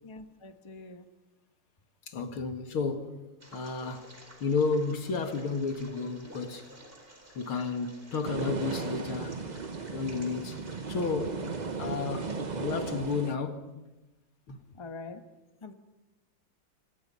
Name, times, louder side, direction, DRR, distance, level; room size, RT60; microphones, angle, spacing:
voice 1, 0.0-1.1 14.8-15.2 15.6-15.7, left 3 dB, 20° left, 1.0 m, -44 dB
voice 2, 2.1-3.2 3.5-4.1 4.4-6.7 7.3-9.4 9.9-10.6 10.9-11.5 11.8-13.8 14.5-14.6, left 4 dB, 85° left, 2.9 m, -32 dB
sound 1, 3.4-13.2, right 1 dB, 25° right, 4.7 m, -53 dB
sound 2, 8.2-13.4, right 4 dB, 55° right, 0.4 m, -36 dB
27.0 x 26.5 x 5.6 m
omnidirectional pair, 2.3 m